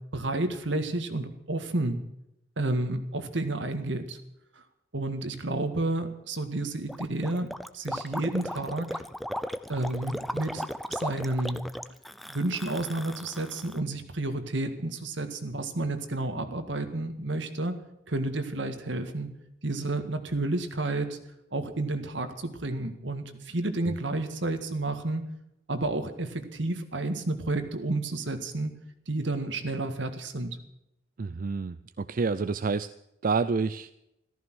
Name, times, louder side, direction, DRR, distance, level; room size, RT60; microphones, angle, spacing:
voice 1, 0.1-2.0 2.6-4.2 4.9-9.0 9.7-11.6 12.3-17.8 18.1-19.3 19.6-21.2 21.5-25.2 25.7-28.7 29.1-30.6, right 2 dB, 75° right, 8 dB, 1.9 m, -31 dB
Gurgling, 6.9-13.8, equal, ahead, 0.6 m, -36 dB
voice 2, 31.2-32.9 33.2-33.9, right 4 dB, 50° right, 13 dB, 0.5 m, -28 dB
14.5 x 14.0 x 6.3 m, 0.84 s
head